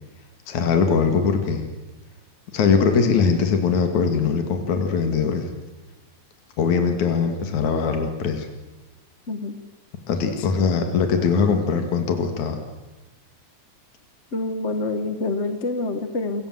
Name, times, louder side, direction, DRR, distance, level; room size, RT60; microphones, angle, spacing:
voice 1, 0.5-1.7 2.5-5.5 6.6-8.5 10.1-12.6, left 5 dB, 70° left, 5 dB, 3.6 m, -21 dB
voice 2, 9.3-9.6 10.4-10.5 14.3-16.5, left 2 dB, 40° left, 8 dB, 1.0 m, -27 dB
28.5 x 23.0 x 7.9 m, 1.1 s
omnidirectional pair, 3.4 m